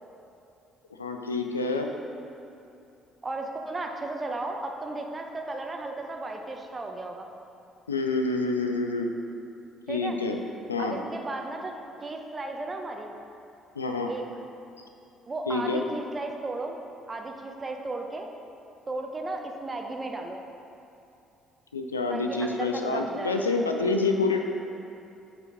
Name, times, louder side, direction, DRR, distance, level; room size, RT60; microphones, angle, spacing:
voice 1, 1.0-1.9 7.9-9.1 9.9-10.4 10.7-11.0 13.8-14.1 15.5-15.8 21.7-24.4, left 3 dB, 85° left, 4 dB, 0.4 m, -27 dB
voice 2, 3.2-7.3 9.9-10.2 10.8-11.7 12.0-13.1 14.1-14.2 15.3-16.7 17.1-18.3 18.9-20.4 22.1-23.3, right 2 dB, 25° right, 3 dB, 0.9 m, -34 dB
8.0 x 4.8 x 5.1 m, 2.8 s
figure-of-eight pair, 50°, 0 cm